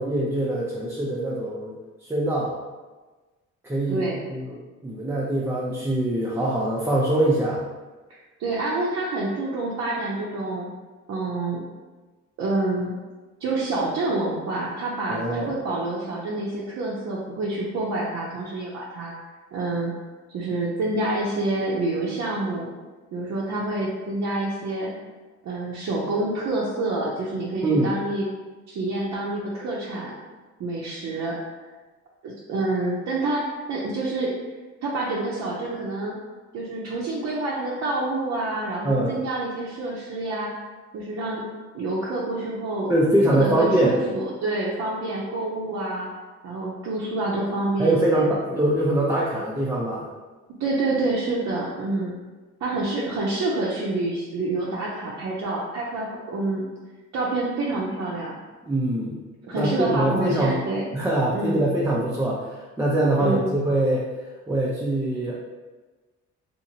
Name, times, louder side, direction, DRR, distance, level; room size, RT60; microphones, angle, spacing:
voice 1, 0.0-1.7 2.1-2.5 3.6-4.0 4.3-4.6 4.8-7.6 15.1-15.5 27.6-28.0 38.8-39.2 42.9-44.0 47.8-50.1 58.7-59.2 59.5-60.6 60.9-64.1 64.5-65.4, right 1 dB, 10° right, -6 dB, 0.4 m, -23 dB
voice 2, 3.9-4.2 8.1-10.7 11.1-11.6 12.4-12.9 13.4-19.1 19.5-19.9 20.3-22.7 23.1-24.9 25.4-28.3 28.7-30.2 30.6-31.4 32.2-34.3 34.8-36.1 36.5-40.5 40.9-41.4 41.7-42.9 43.3-46.1 46.4-48.3 50.6-52.1 52.6-56.6 57.1-58.4 59.5-61.0 61.3-61.7 63.2-63.5, right 2 dB, 60° right, -5 dB, 0.6 m, -27 dB
2.6 x 2.5 x 2.8 m, 1.3 s
cardioid pair, 90°, 30 cm